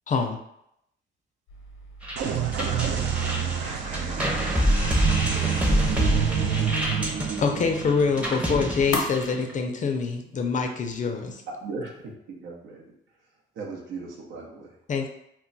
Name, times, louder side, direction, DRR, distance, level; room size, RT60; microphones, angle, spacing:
voice 1, 0.1-0.4 7.4-11.4 14.9-15.1, left 5 dB, 40° left, 0.4 m, -25 dB
sound 1, 1.5-9.3, left 2 dB, 80° left, 0.6 m, -39 dB
sound 2, 2.0-9.5, equal, 5° right, 0.6 m, -27 dB
sound 3, 2.2-9.7, right 7 dB, 65° right, 0.4 m, -28 dB
voice 2, 3.2-6.7, right 1 dB, 35° right, 0.9 m, -39 dB
voice 3, 11.5-12.8 13.6-14.8, right 3 dB, 85° right, 0.7 m, -37 dB
2.2 x 2.2 x 3.8 m
cardioid pair, 90°, 20 cm